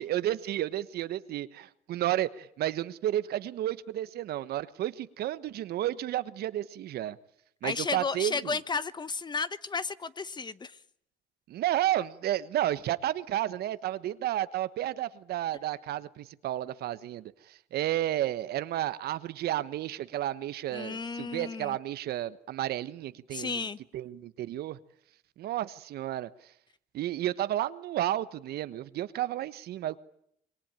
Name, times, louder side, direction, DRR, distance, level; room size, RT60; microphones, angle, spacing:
voice 1, 0.0-7.2 7.6-8.4 11.5-23.6 23.9-24.8 25.4-26.3 26.9-30.0, right 13 dB, 70° right, 1.2 m, -32 dB
voice 2, 7.6-10.8 20.7-21.8 23.3-23.8, left 4 dB, 25° left, 1.0 m, -33 dB
26.5 x 22.5 x 9.0 m
cardioid pair, 110°, 17 cm